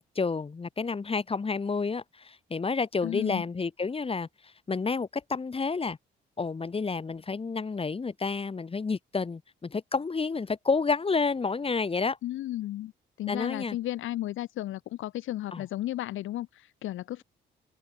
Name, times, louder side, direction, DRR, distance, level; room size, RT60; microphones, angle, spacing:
voice 1, 0.0-4.3 4.7-6.0 6.4-12.2 13.3-13.8 15.5-15.6, left 4 dB, 30° left, 1.7 m, -30 dB
voice 2, 3.0-3.4 12.2-12.9 13.2-17.2, left 14 dB, 85° left, 2.3 m, -34 dB
open air
cardioid pair, 90°, 20 cm